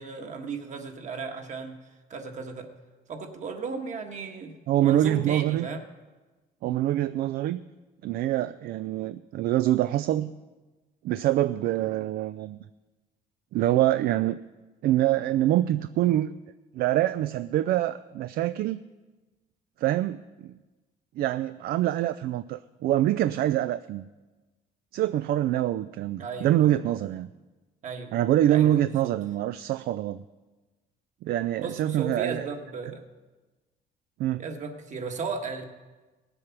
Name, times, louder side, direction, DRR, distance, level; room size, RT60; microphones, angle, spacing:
voice 1, 0.0-1.8 2.1-2.7 3.1-4.5 4.8-5.8 26.2-26.8 27.8-28.1 28.5-29.1 31.6-33.0 34.4-35.6, right 4 dB, 45° right, 4 dB, 1.6 m, -35 dB
voice 2, 4.7-5.7 6.6-7.6 8.0-10.3 11.0-12.6 13.5-14.4 14.8-16.3 16.7-18.8 19.8-20.5 21.2-24.0 24.9-27.3 28.1-30.2 31.2-32.5 34.2-34.4, right 13 dB, 65° right, 13 dB, 0.4 m, -25 dB
17.5 x 7.9 x 6.0 m, 1.2 s
cardioid pair, 110°, 17 cm